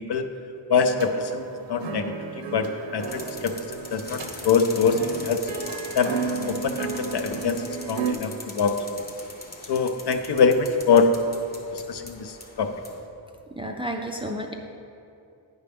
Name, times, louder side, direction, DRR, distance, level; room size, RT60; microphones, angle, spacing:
voice 1, 0.7-2.7 2.9-5.4 5.9-6.1 6.4-9.0 9.7-11.2 11.7-12.7, left 5 dB, 60° left, 7 dB, 0.6 m, -24 dB
sound 1, 0.8-8.1, right 5 dB, 75° right, 0.7 m, -34 dB
sound 2, 3.0-13.0, left 2 dB, 20° left, 0.9 m, -41 dB
voice 2, 13.6-14.5, equal, 15° right, 1 dB, 0.4 m, -31 dB
9.4 x 5.5 x 3.5 m, 2.6 s
wide cardioid pair, 115°, 45 cm